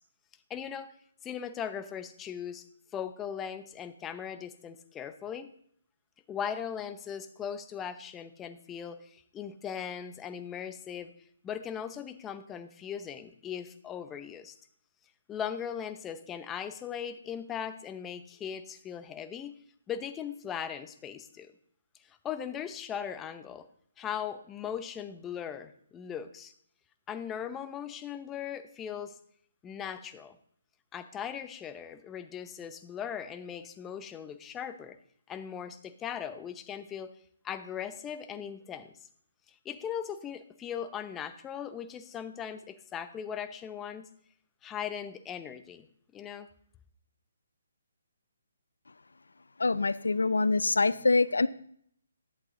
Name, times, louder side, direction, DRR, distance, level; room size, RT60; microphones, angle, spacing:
voice 1, 0.5-0.9 1.2-2.6 2.9-5.5 6.3-11.1 11.4-14.6 15.3-19.6 19.9-21.5 22.1-23.7 24.0-26.5 27.1-29.2 29.6-30.4 30.9-35.0 35.3-37.1 37.4-38.9 39.6-44.1 44.6-45.9 46.1-46.5, left 8 dB, 15° left, 11 dB, 0.7 m, -39 dB
voice 2, 49.6-51.5, left 3 dB, 85° left, 18 dB, 0.5 m, -25 dB
11.0 x 7.8 x 3.8 m, 0.63 s
hypercardioid pair, 150°, 0 cm